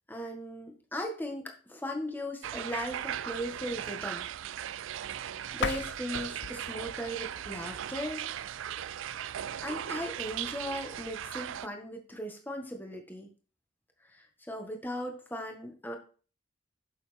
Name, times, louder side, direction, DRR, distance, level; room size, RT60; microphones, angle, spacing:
voice 1, 0.1-4.3 5.1-8.3 9.6-13.3 14.1-16.0, equal, 10° left, 3 dB, 1.5 m, -38 dB
sound 1, 2.4-11.7, right 10 dB, 80° right, 0.4 m, -38 dB
sound 2, 5.5-8.4, left 6 dB, 60° left, 0.4 m, -39 dB
9.1 x 7.0 x 3.5 m, 0.39 s
head